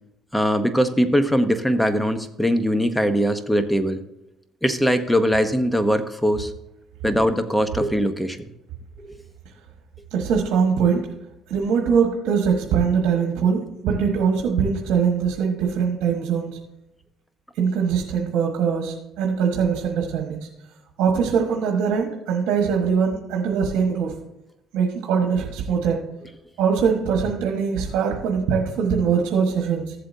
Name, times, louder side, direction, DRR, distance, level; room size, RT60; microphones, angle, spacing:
voice 1, 0.3-4.0 4.6-6.5 7.0-8.4, equal, 5° left, 9 dB, 1.0 m, -21 dB
voice 2, 10.1-11.1 11.5-16.6 17.5-20.5 21.0-24.2 24.7-26.0 26.6-29.9, right 6 dB, 75° right, 1 dB, 1.4 m, -22 dB
14.5 x 7.7 x 2.8 m, 0.89 s
supercardioid pair, 85°, 0 cm